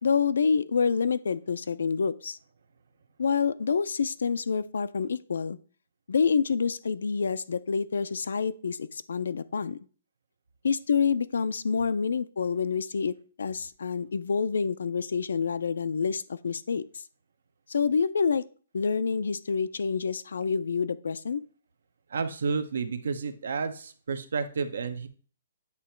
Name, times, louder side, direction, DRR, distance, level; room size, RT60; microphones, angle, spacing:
voice 1, 0.0-2.4 3.2-5.6 6.1-9.8 10.6-13.1 13.4-16.8 17.7-18.4 18.7-21.4, left 5 dB, 85° left, 13 dB, 0.4 m, -27 dB
voice 2, 22.1-25.1, right 5 dB, 70° right, 11 dB, 0.7 m, -31 dB
8.3 x 2.9 x 4.4 m, 0.40 s
hypercardioid pair, 170°, 0 cm